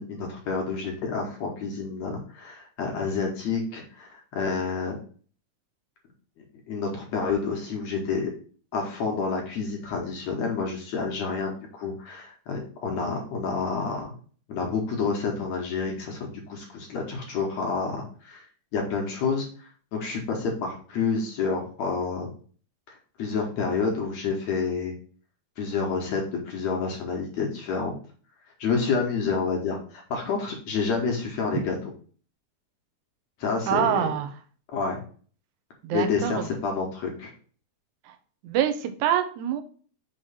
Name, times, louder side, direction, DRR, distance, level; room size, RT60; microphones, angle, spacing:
voice 1, 0.0-5.0 6.7-8.3 8.7-14.1 14.5-18.5 18.7-22.3 22.9-24.9 25.6-27.9 28.6-31.8 33.4-34.0 34.7-35.0 35.9-37.3, left 5 dB, 65° left, 0 dB, 1.9 m, -29 dB
voice 2, 33.7-34.3 35.8-36.5 38.1-38.2 38.4-39.6, right 10 dB, 75° right, 8 dB, 1.9 m, -25 dB
6.4 x 3.1 x 5.6 m, 0.42 s
omnidirectional pair, 4.3 m